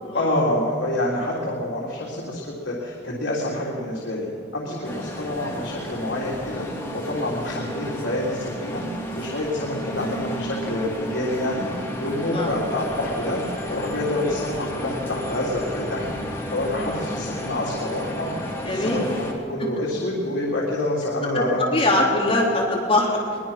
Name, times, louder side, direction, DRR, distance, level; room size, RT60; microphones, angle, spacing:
voice 1, 0.1-4.3 4.5-13.4 13.7-18.3 18.7-21.9, left 1 dB, 80° left, -4 dB, 3.5 m, -27 dB
sound 1, 4.8-19.3, equal, 15° left, 3.1 m, -32 dB
voice 2, 16.8-17.1 18.6-19.1 21.3-21.4 21.7-23.4, left 2 dB, 30° left, -2 dB, 3.2 m, -22 dB
22.5 x 22.0 x 5.9 m, 2.4 s
head